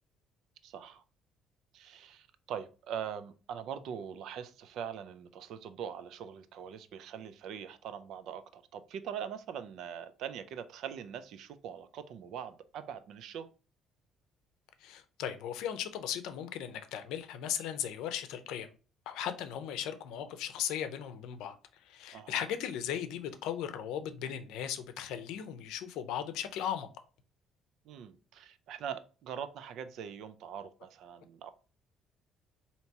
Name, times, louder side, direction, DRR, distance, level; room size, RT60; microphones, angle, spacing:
voice 1, 0.6-1.0 1.7-13.5 22.1-22.5 27.9-31.5, right 8 dB, 70° right, 0.4 m, -42 dB
voice 2, 14.8-18.7 19.1-21.6 21.8-26.9, left 9 dB, 90° left, 0.6 m, -37 dB
4.5 x 2.8 x 2.8 m
cardioid pair, 140°, 0 cm